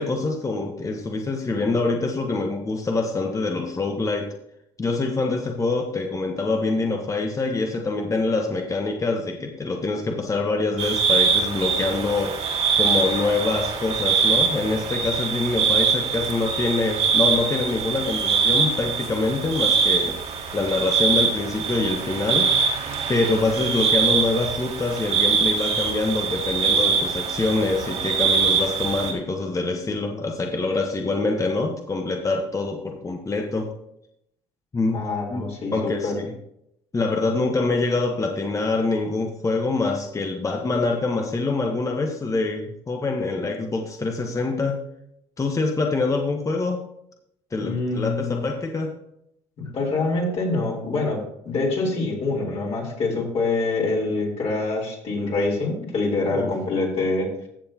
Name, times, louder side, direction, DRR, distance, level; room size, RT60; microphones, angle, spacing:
voice 1, 0.0-4.3 4.8-12.4 12.8-20.2 20.5-22.5 23.1-33.7 34.7-35.0 35.3-35.4 35.7-36.3 36.9-44.8 45.4-46.8 47.5-48.9 56.3-56.5, left 3 dB, 25° left, 2 dB, 1.3 m, -25 dB
sound 1, 10.8-29.1, right 6 dB, 60° right, 2.4 m, -23 dB
voice 2, 34.9-36.1 47.6-48.4 49.7-57.3, left 3 dB, 50° left, -2 dB, 3.7 m, -25 dB
15.0 x 7.0 x 2.9 m, 0.77 s
supercardioid pair, 75°, 13 cm